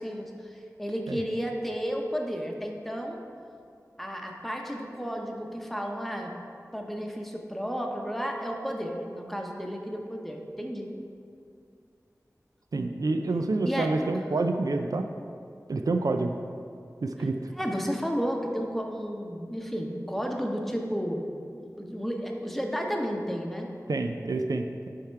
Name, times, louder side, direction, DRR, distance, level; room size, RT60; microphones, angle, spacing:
voice 1, 0.0-3.2 4.0-6.3 6.7-10.9 13.6-13.9 17.2-17.3 17.5-23.7, equal, 5° left, 1 dB, 0.9 m, -32 dB
voice 2, 12.7-15.1 15.7-16.3 17.0-17.4 23.9-24.9, right 3 dB, 75° right, 5 dB, 0.4 m, -28 dB
9.9 x 3.6 x 4.6 m, 2.4 s
wide cardioid pair, 45°, 6 cm